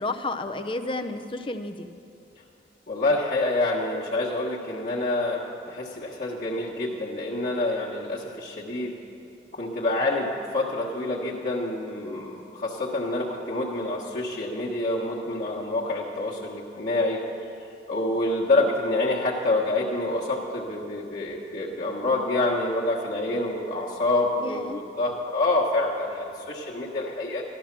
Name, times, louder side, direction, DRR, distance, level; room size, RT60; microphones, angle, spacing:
voice 1, 0.0-1.9 24.3-24.8, left 2 dB, 30° left, 8 dB, 0.6 m, -31 dB
voice 2, 2.9-8.9 9.5-17.3 17.9-27.4, left 2 dB, 50° left, -7 dB, 1.4 m, -27 dB
13.5 x 12.0 x 6.0 m, 2.9 s
head